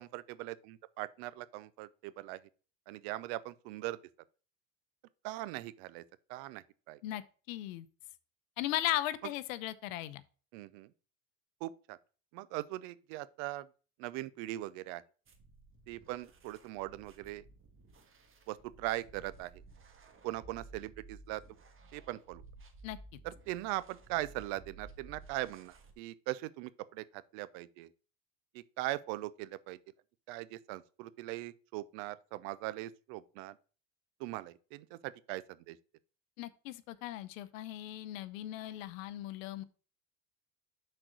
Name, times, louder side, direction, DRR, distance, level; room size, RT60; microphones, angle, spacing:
voice 1, 0.0-2.4 2.9-4.0 5.2-6.0 6.3-7.0 10.5-10.9 11.6-12.0 12.3-13.7 14.0-15.0 15.9-17.4 18.5-19.5 20.2-21.4 21.9-22.4 23.2-27.9 28.5-29.8 30.3-33.6 34.2-35.8, right 17 dB, 75° right, 0.6 m, -40 dB
voice 2, 7.5-7.9 8.6-10.2 22.8-23.0 36.4-39.6, left 14 dB, 90° left, 0.7 m, -37 dB
sound 1, 15.3-25.9, right 3 dB, 30° right, 1.5 m, -56 dB
6.2 x 4.3 x 6.2 m
supercardioid pair, 90°, 39 cm